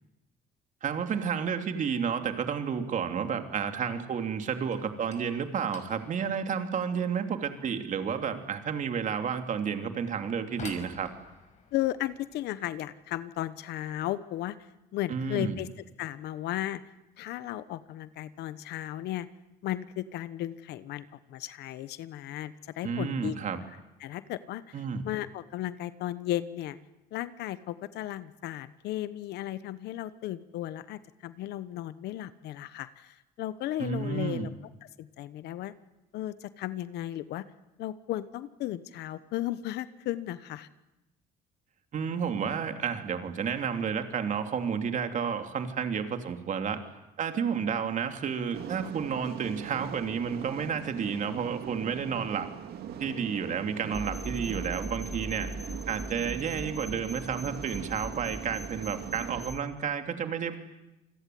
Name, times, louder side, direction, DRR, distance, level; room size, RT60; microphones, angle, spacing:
voice 1, 0.8-11.1 15.1-15.6 22.8-23.6 24.7-25.1 33.8-34.5 41.9-46.8 47.2-52.5 53.0-55.5 55.9-60.6, right 7 dB, 50° right, 7 dB, 3.1 m, -31 dB
sound 1, 4.7-15.4 15.6-16.2 16.5-16.8 17.1-17.2 17.9-18.0 18.9-19.2 19.5-20.0, left 5 dB, 45° left, 5.7 m, -52 dB
voice 2, 11.7-14.6 14.9-15.7 16.0-16.8 17.2-19.3 19.6-23.3 24.0-26.8 27.1-34.5 34.8-35.7 36.1-37.4 37.8-40.7, left 14 dB, 80° left, 14 dB, 1.2 m, -35 dB
sound 2, 48.5-59.5, right 9 dB, 70° right, 2.4 m, -41 dB
sound 3, 53.9-59.6, equal, ahead, 2.7 m, -40 dB
28.0 x 21.5 x 9.5 m, 0.96 s
cardioid pair, 110°, 17 cm